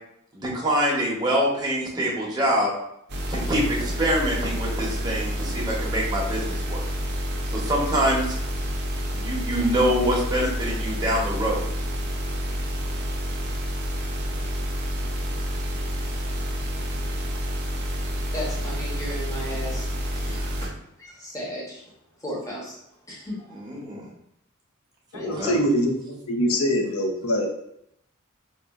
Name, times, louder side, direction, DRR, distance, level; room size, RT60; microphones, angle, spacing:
voice 1, 0.3-2.7 3.3-6.8 7.4-8.4 9.1-11.6 23.5-24.1 25.1-25.6, equal, 20° right, -4 dB, 0.8 m, -25 dB
sound 1, 3.1-20.7, equal, 50° right, 0.6 m, -29 dB
voice 2, 18.3-19.9 20.1-20.7 21.0-21.8 22.2-22.8 23.1-23.6, equal, 15° left, -6 dB, 1.0 m, -35 dB
voice 3, 25.1-25.9 26.3-27.5, equal, 85° left, 2 dB, 0.6 m, -23 dB
4.1 x 2.4 x 2.3 m, 0.76 s
head